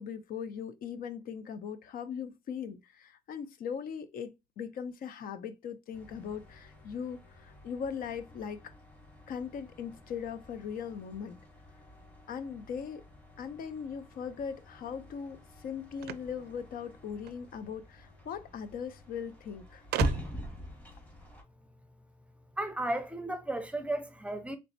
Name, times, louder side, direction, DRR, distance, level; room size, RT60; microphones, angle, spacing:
voice 1, 0.0-8.7 9.3-11.4 12.3-13.0 13.4-19.8, left 7 dB, 60° left, 0.6 m, -39 dB
sound 1, 5.9-21.4, equal, 10° left, 1.5 m, -43 dB
sound 2, 16.0-17.4 18.5-18.6 18.8-18.9 19.9-20.6, right 12 dB, 70° right, 0.4 m, -37 dB
voice 2, 22.6-24.6, right 1 dB, 5° right, 0.7 m, -34 dB
4.0 x 3.3 x 2.6 m
cardioid pair, 110°, 17 cm